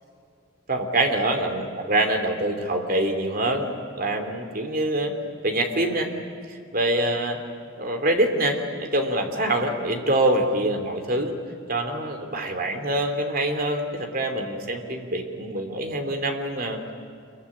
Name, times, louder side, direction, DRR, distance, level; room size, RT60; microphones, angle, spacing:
voice 1, 0.7-5.1 5.4-6.1 6.5-7.4 7.7-11.3 11.7-16.8, right 1 dB, 45° right, 5 dB, 3.0 m, -25 dB
26.0 x 23.0 x 9.9 m, 2.4 s
head